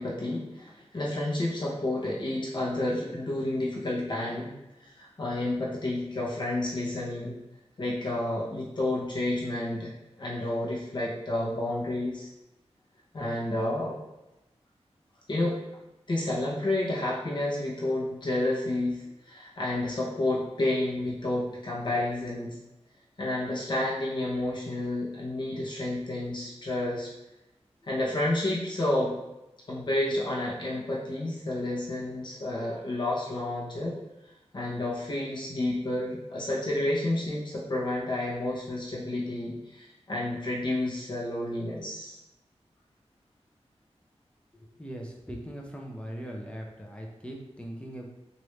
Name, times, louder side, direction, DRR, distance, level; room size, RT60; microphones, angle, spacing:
voice 1, 0.0-4.5 4.8-7.3 7.8-9.9 10.2-12.3 13.1-14.0 15.3-15.6 16.1-22.6 23.2-27.1 27.9-29.1 29.7-34.0 34.5-42.2, left 1 dB, 45° left, -6 dB, 0.8 m, -30 dB
voice 2, 44.5-48.1, equal, 10° left, -1 dB, 0.6 m, -40 dB
3.1 x 2.5 x 3.1 m, 0.95 s
wide cardioid pair, 80°, 11 cm